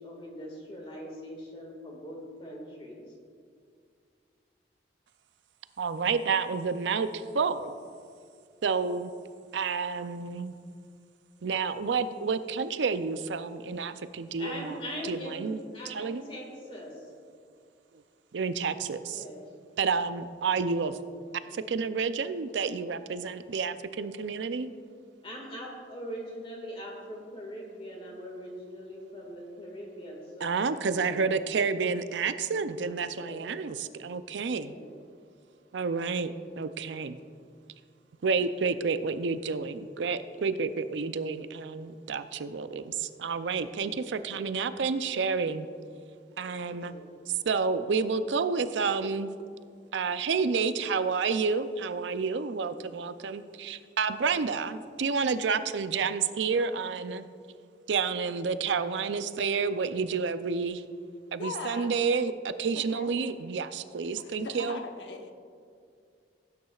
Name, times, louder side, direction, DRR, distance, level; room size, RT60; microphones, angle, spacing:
voice 1, 0.0-3.1 14.4-17.1 19.0-19.4 25.2-31.6 33.0-33.4 34.5-34.9 46.5-47.1, equal, 30° left, -1 dB, 1.9 m, -42 dB
voice 2, 5.8-7.7 8.6-9.1 9.5-10.6 11.4-14.8 15.0-15.6 15.9-16.2 18.3-19.2 19.8-21.0 21.5-24.7 30.4-34.7 35.7-37.2 38.2-45.7 46.4-46.9 47.5-49.3 49.9-57.2 57.9-60.8 61.3-64.8, right 5 dB, 90° right, 12 dB, 0.5 m, -30 dB
voice 3, 61.4-61.9 62.9-63.1 64.2-65.3, left 3 dB, 85° left, 4 dB, 0.9 m, -39 dB
16.0 x 9.4 x 2.4 m, 2.2 s
head